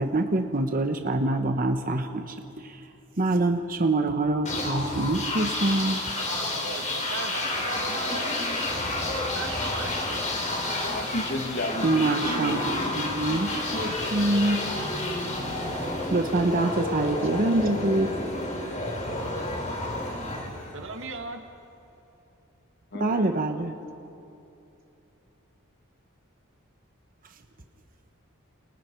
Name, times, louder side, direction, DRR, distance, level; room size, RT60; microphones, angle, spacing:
voice 1, 0.0-2.8 3.2-6.0 11.8-14.6 15.6-18.1 23.0-23.7, right 2 dB, 40° right, 5 dB, 1.1 m, -25 dB
sound 1, 4.4-21.2, left 2 dB, 35° left, 3.9 m, -30 dB
voice 2, 6.1-8.3 9.3-9.9 20.7-21.4, right 3 dB, 65° right, 4 dB, 1.8 m, -37 dB
voice 3, 10.7-13.1 22.9-23.4, left 1 dB, 50° left, 5 dB, 1.8 m, -33 dB
29.5 x 28.5 x 4.6 m, 2.8 s
head